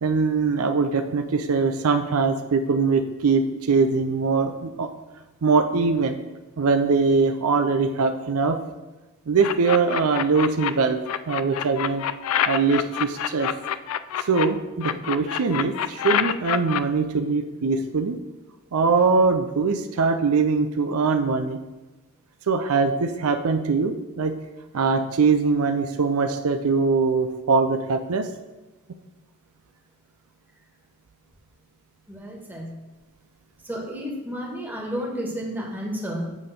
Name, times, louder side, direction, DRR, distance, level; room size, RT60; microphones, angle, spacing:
voice 1, 0.0-4.9 5.4-6.2 6.6-8.6 9.3-11.0 11.3-12.0 12.5-13.5 14.2-18.2 18.7-21.6 22.5-24.3 24.7-28.3, right 4 dB, 75° right, 7 dB, 0.5 m, -22 dB
sound 1, 9.4-10.7 11.1-14.5 14.8-16.8, left 10 dB, 75° left, 0.3 m, -26 dB
voice 2, 32.1-32.7 33.6-36.4, equal, 10° right, -3 dB, 1.6 m, -31 dB
8.0 x 3.7 x 6.6 m, 1.1 s
head